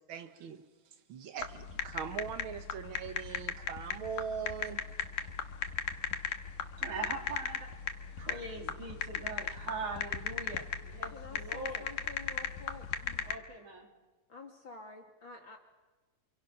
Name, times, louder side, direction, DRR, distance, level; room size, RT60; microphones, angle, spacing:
voice 1, 0.1-4.8, right 7 dB, 75° right, 8 dB, 1.1 m, -41 dB
sound 1, 1.4-13.4, left 8 dB, 75° left, 3.0 m, -37 dB
voice 2, 6.8-7.7 8.2-11.8 13.2-13.9, right 3 dB, 60° right, 2 dB, 4.6 m, -41 dB
voice 3, 11.1-12.9 14.3-15.6, left 3 dB, 40° left, 3 dB, 2.3 m, -49 dB
29.0 x 27.0 x 5.9 m, 1.3 s
omnidirectional pair, 3.9 m